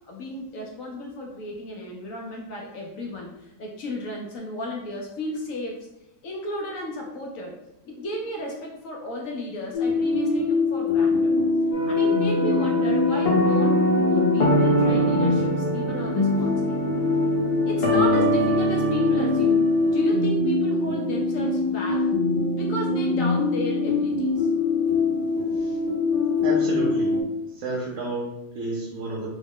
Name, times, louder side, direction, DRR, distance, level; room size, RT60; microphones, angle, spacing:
voice 1, 0.0-5.9 6.2-7.5 7.8-11.4 11.9-16.8 17.7-22.0 22.5-24.5, left 1 dB, 70° left, 0 dB, 0.8 m, -33 dB
sound 1, 9.7-27.2, left 3 dB, 90° left, 1.6 m, -23 dB
sound 2, 11.7-20.1, right 1 dB, 45° left, 0.8 m, -24 dB
voice 2, 26.4-27.1 27.5-29.3, right 2 dB, 65° right, -4 dB, 0.9 m, -31 dB
3.6 x 2.0 x 3.6 m, 0.87 s
omnidirectional pair, 1.8 m